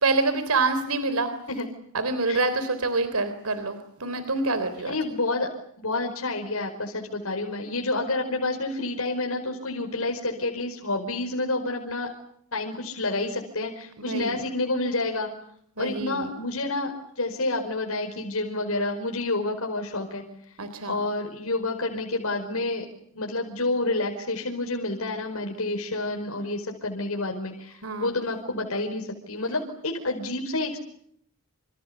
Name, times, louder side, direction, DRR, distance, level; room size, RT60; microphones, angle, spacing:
voice 1, 0.0-1.3 1.9-5.0 14.0-14.4 15.8-16.2 20.6-21.0 27.8-28.1, right 3 dB, 80° right, 10 dB, 3.6 m, -26 dB
voice 2, 4.8-12.1 12.5-15.3 15.8-20.2 20.9-22.9 23.1-30.8, left 2 dB, 75° left, 2 dB, 5.1 m, -29 dB
28.5 x 28.5 x 7.1 m, 0.69 s
head